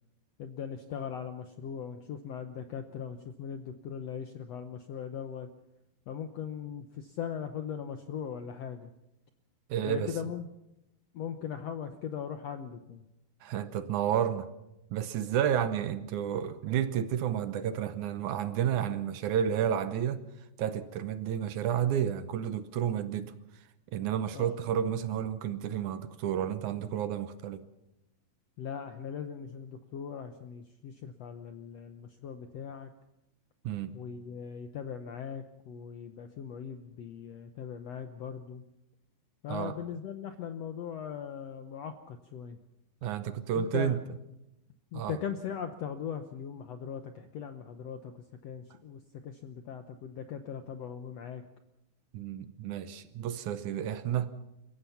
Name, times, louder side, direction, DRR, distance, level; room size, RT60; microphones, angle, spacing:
voice 1, 0.4-5.5 6.1-8.9 9.8-10.5 11.1-13.0 24.3-24.6 28.6-32.9 33.9-38.6 39.4-42.6 43.5-44.0 44.9-51.4, left 8 dB, 80° left, 1.4 m, -39 dB
voice 2, 9.7-10.2 13.4-14.5 14.9-20.3 20.6-23.3 23.9-27.7 33.6-33.9 39.5-39.8 43.0-44.0 44.9-45.2 52.1-54.3, right 9 dB, 70° right, 2.0 m, -31 dB
29.5 x 16.0 x 5.8 m
omnidirectional pair, 4.3 m